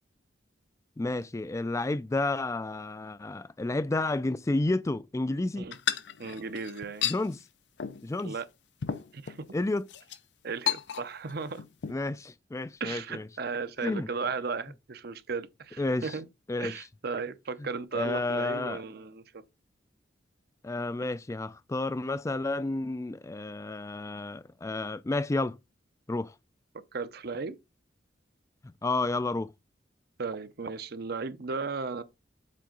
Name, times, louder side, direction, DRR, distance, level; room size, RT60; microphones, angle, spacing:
voice 1, 1.0-5.7 7.0-7.4 8.0-8.3 9.5-9.8 11.9-13.3 13.8-14.1 15.8-16.1 16.5-16.8 17.9-18.8 20.6-25.6 26.1-26.3 28.6-29.5, left 2 dB, 15° left, 0.3 m, -31 dB
sound 1, 5.7-7.2 7.8-8.0 8.4-8.5 8.8-9.4 9.9-10.2 10.7-11.3 11.6-11.9, left 9 dB, 70° left, 0.6 m, -32 dB
voice 2, 6.2-7.1 8.2-8.5 9.1-9.5 10.4-11.6 12.8-16.3 16.6-19.4 26.7-27.6 30.2-32.0, right 4 dB, 60° right, 0.7 m, -35 dB
7.5 x 4.5 x 3.9 m
head